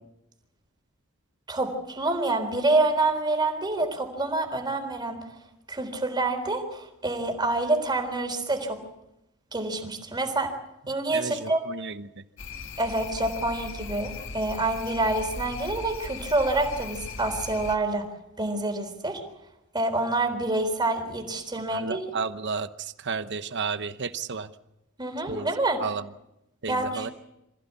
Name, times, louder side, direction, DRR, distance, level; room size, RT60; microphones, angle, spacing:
voice 1, 1.5-5.2 5.7-8.8 9.5-10.5 10.9-11.7 12.8-18.1 18.4-19.2 19.7-22.0 25.0-25.8 26.7-27.1, right 2 dB, 20° right, 5 dB, 3.8 m, -27 dB
voice 2, 11.1-12.1 21.7-24.5 25.3-25.5 25.8-26.0 26.6-27.1, right 5 dB, 55° right, 11 dB, 1.0 m, -32 dB
sound 1, 12.4-17.8, left 4 dB, 65° left, 1.5 m, -38 dB
26.0 x 15.5 x 8.3 m, 0.88 s
head